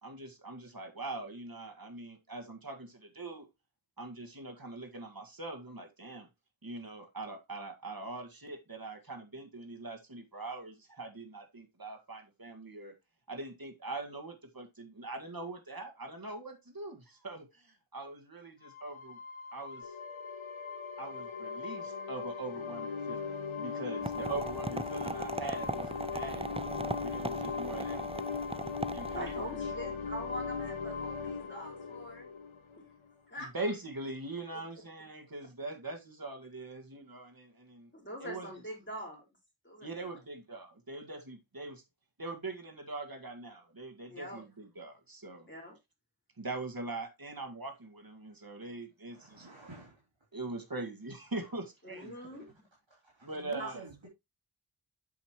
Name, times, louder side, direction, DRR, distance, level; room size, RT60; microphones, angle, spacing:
voice 1, 0.0-3.5 4.0-6.3 6.6-13.0 13.3-19.2 19.5-20.0 21.0-26.5 27.0-28.0 28.9-29.7 33.4-37.9 38.2-38.5 39.8-41.8 42.2-45.5 46.4-49.5 50.3-52.1 53.2-53.8, right 2 dB, 45° right, 2.0 m, -42 dB
sound 1, 18.6-33.1, left 5 dB, 75° left, 1.1 m, -39 dB
sound 2, 19.8-33.0, left 4 dB, 50° left, 2.0 m, -50 dB
sound 3, 24.0-29.5, right 3 dB, 15° right, 0.4 m, -39 dB
voice 2, 29.1-32.3 32.7-32.8 33.3-33.5 34.5-34.6 37.9-39.2 39.6-40.0 44.1-44.4 45.5-45.8 51.9-52.6 53.6-53.7, equal, 25° left, 4.6 m, -43 dB
voice 3, 49.1-50.1 51.3-51.5 51.9-52.4 52.9-54.1, right 2 dB, 65° right, 3.3 m, -51 dB
8.3 x 6.6 x 3.0 m
wide cardioid pair, 50°, 48 cm